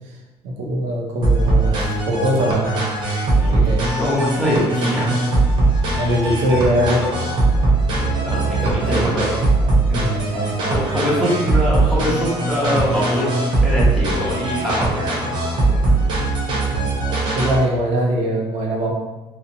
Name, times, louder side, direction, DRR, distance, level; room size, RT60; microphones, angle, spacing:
voice 1, 0.4-2.8 3.4-3.9 5.9-7.4 7.8-8.5 10.0-10.5 16.7-17.0 17.3-18.9, equal, 80° right, -1 dB, 0.6 m, -22 dB
sound 1, 1.2-17.6, right 2 dB, 45° right, 0.8 m, -20 dB
voice 2, 4.0-5.1 8.2-9.4 9.9-15.3 15.7-15.8 16.8-16.9, equal, 5° left, -7 dB, 0.7 m, -23 dB
2.8 x 2.0 x 2.6 m, 1.1 s
cardioid pair, 165°, 11 cm